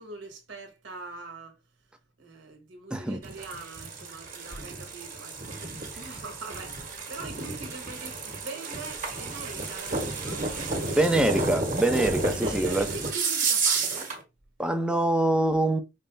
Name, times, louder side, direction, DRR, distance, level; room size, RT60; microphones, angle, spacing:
voice 1, 0.0-1.6 2.2-11.5 12.3-14.1, right 3 dB, 85° right, 1.2 m, -43 dB
sound 1, 3.2-14.2, right 3 dB, 45° right, 1.4 m, -31 dB
voice 2, 11.0-12.9 14.6-15.8, right 1 dB, 5° right, 0.5 m, -24 dB
5.3 x 2.0 x 3.3 m
head